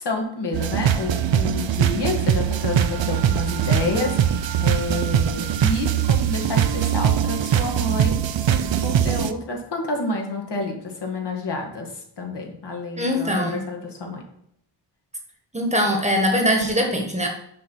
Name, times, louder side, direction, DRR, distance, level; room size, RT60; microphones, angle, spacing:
voice 1, 0.0-14.3, left 2 dB, 65° left, 1 dB, 1.8 m, -29 dB
sound 1, 0.5-9.3, right 9 dB, 85° right, 0.6 m, -22 dB
voice 2, 13.0-13.6 15.5-17.3, equal, 15° right, 2 dB, 1.2 m, -22 dB
6.4 x 5.6 x 6.0 m, 0.73 s
wide cardioid pair, 170°, 43 cm